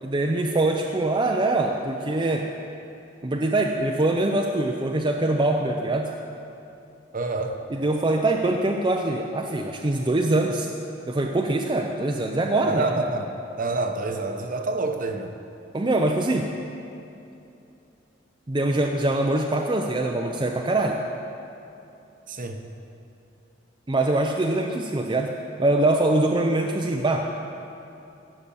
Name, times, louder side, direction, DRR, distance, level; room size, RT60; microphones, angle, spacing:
voice 1, 0.0-2.5 3.2-6.1 7.7-10.7 11.1-13.0 15.7-16.5 18.5-21.0 23.9-25.3 25.6-27.2, right 2 dB, 25° right, 1 dB, 0.6 m, -23 dB
voice 2, 7.1-7.6 12.7-15.3 22.3-22.6, right 3 dB, 45° right, 5 dB, 0.9 m, -27 dB
15.5 x 6.1 x 6.9 m, 2.8 s
head